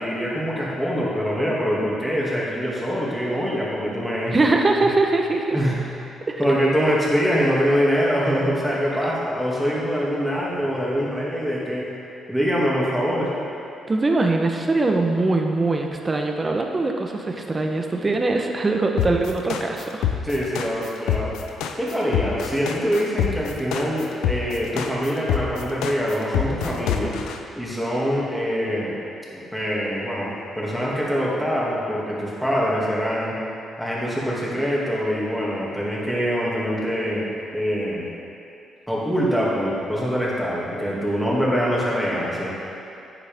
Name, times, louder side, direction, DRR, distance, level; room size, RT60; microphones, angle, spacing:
voice 1, 0.0-4.4 5.5-5.8 6.4-11.9 12.3-13.3 20.2-21.3 21.8-27.2 27.6-29.0 29.3-33.4 33.8-37.3 37.5-38.1 38.9-42.5, equal, ahead, -6 dB, 2.4 m, -24 dB
voice 2, 4.3-5.6 6.3-6.4 9.0-9.1 13.9-20.0, right 2 dB, 25° right, 3 dB, 1.0 m, -22 dB
sound 1, 19.0-27.4, left 9 dB, 90° left, 0.6 m, -25 dB
10.0 x 8.6 x 3.6 m, 2.7 s
cardioid pair, 90°, 0 cm